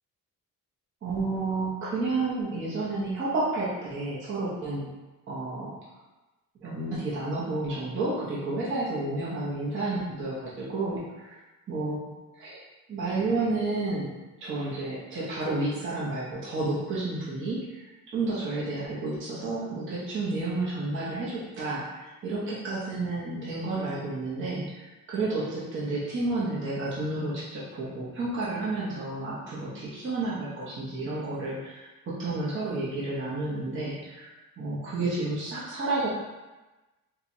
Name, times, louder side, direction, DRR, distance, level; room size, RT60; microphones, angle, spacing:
voice 1, 1.0-4.9 5.3-5.8 6.6-11.3 11.7-12.0 12.3-12.6 12.9-14.1 14.4-34.3 34.6-36.1, right 2 dB, 35° right, -8 dB, 0.8 m, -31 dB
4.4 x 2.2 x 2.6 m, 1.1 s
cardioid pair, 150°, 35 cm